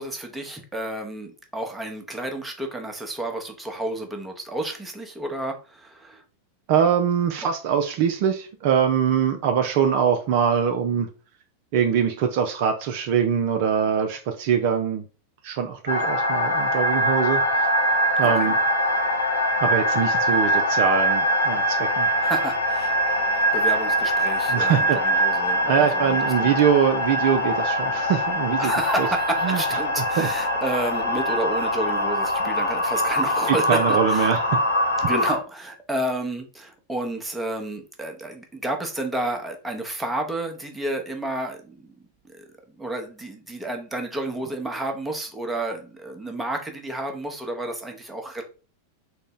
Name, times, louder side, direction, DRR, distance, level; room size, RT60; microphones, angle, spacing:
voice 1, 0.0-6.2 18.2-18.5 22.2-26.5 28.6-34.3 35.0-41.9 42.3-42.4 42.8-48.4, right 1 dB, 10° right, 0.8 m, -31 dB
voice 2, 6.7-11.1 11.7-15.0 15.4-17.7 18.2-18.5 19.6-22.1 24.5-25.0 25.7-28.7 29.0-29.1 29.4-29.6 30.2-30.3 33.5-34.6, right 8 dB, 45° right, 0.4 m, -23 dB
sound 1, 15.9-35.4, equal, 75° left, 0.7 m, -23 dB
3.8 x 2.1 x 3.7 m
figure-of-eight pair, 90°, 0 cm